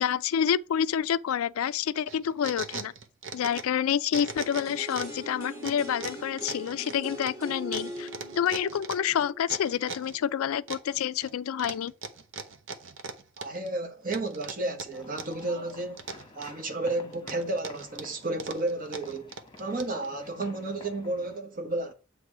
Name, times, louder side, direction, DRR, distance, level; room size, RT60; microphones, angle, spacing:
voice 1, 0.0-2.9 3.3-8.1 8.4-11.9, left 8 dB, 80° left, 0.3 m, -28 dB
sound 1, 2.1-3.8 4.1-5.2 5.6-10.2 10.7-11.3 11.6-13.7 14.1-15.4 15.7-16.7 17.1-20.1, right 4 dB, 60° right, 0.8 m, -39 dB
sound 2, 4.3-10.2 10.5-10.6, right 1 dB, 15° right, 2.3 m, -41 dB
voice 2, 13.4-16.0 16.3-19.3 19.6-21.9, right 2 dB, 40° right, 1.2 m, -32 dB
sound 3, 14.9-21.4, left 2 dB, 25° left, 1.1 m, -50 dB
8.1 x 3.4 x 4.8 m
head